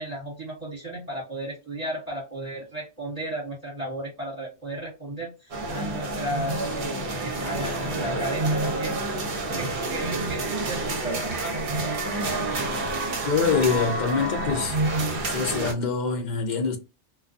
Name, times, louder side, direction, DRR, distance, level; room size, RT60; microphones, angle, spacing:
voice 1, 0.0-9.0 9.4-12.0, right 1 dB, 35° right, 1.2 m, -34 dB
sound 1, 5.5-15.7, right 2 dB, 55° right, 0.8 m, -28 dB
voice 2, 13.2-14.8 15.2-16.8, left 5 dB, 60° left, 0.5 m, -25 dB
2.3 x 2.3 x 2.4 m
omnidirectional pair, 1.2 m